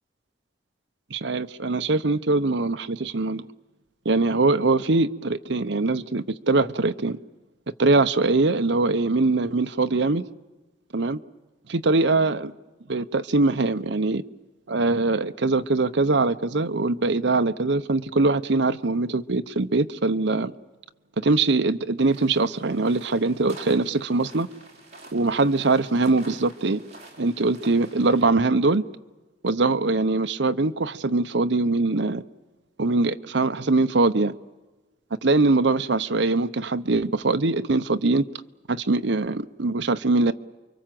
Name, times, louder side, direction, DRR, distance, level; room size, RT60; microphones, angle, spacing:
voice 1, 1.1-3.5 4.0-7.2 7.8-10.3 10.9-11.2 11.7-12.5 12.9-14.2 14.7-20.5 21.2-24.5 25.1-26.8 27.2-28.8 29.4-32.2 32.8-34.3 35.2-38.2 38.7-40.3, right 3 dB, 70° right, 10 dB, 0.9 m, -22 dB
sound 1, 22.0-28.2, right 2 dB, 35° right, 4.3 m, -48 dB
29.5 x 24.0 x 7.7 m, 1.1 s
head